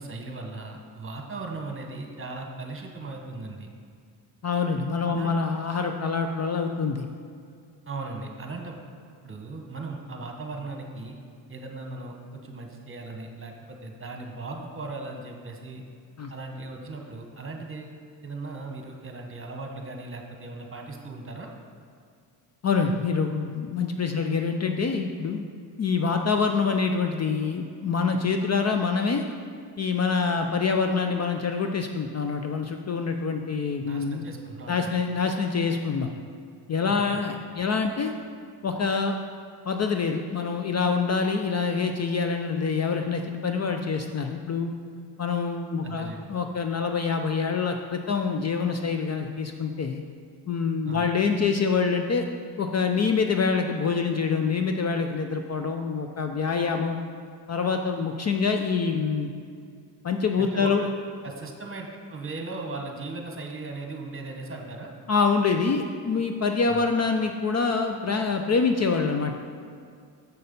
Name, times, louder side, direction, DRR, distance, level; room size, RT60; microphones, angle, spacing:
voice 1, 0.0-3.7 5.0-5.4 7.9-8.7 9.2-11.1 11.5-15.8 16.3-21.5 33.8-34.9 36.9-37.2 45.8-46.3 50.8-51.1 60.4-60.9 61.2-64.9 66.7-66.8, right 3 dB, 30° right, 2 dB, 1.3 m, -38 dB
voice 2, 4.4-7.1 16.2-16.3 22.6-25.4 25.8-29.2 29.8-34.3 34.7-36.1 36.7-38.1 38.6-39.2 39.7-44.7 45.2-50.0 50.5-52.3 52.6-57.0 57.5-59.3 60.0-60.9 65.1-69.4, left 5 dB, 35° left, 5 dB, 0.5 m, -26 dB
6.8 x 6.3 x 5.3 m, 2.3 s
cardioid pair, 85°, 44 cm